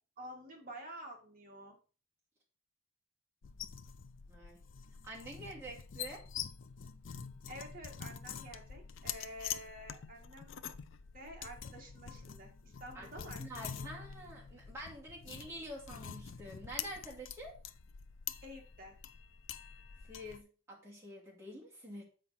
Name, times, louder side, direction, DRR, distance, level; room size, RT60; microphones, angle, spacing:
voice 1, 0.2-1.8 7.5-10.6 11.1-13.9 18.4-19.0, equal, 40° right, 1 dB, 1.7 m, -50 dB
sound 1, 3.4-20.4, left 8 dB, 60° left, 0.4 m, -46 dB
voice 2, 4.3-4.6 5.0-6.2 12.9-17.6 20.1-22.0, right 1 dB, 10° right, -4 dB, 2.2 m, -47 dB
7.4 x 5.0 x 4.1 m, 0.37 s
head